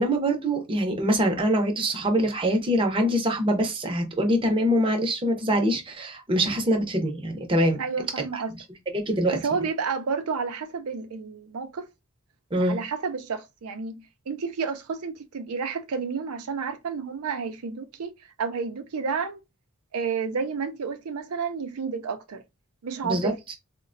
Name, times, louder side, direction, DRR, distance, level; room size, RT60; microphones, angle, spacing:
voice 1, 0.0-7.8 8.2-8.4 8.9-9.4 12.5-12.8 23.0-23.3, equal, 25° right, 0.6 m, -24 dB
voice 2, 7.8-8.5 9.3-11.9 12.6-19.4 19.9-22.4 22.8-23.3, right 5 dB, 85° right, 0.5 m, -31 dB
3.9 x 2.1 x 2.5 m
head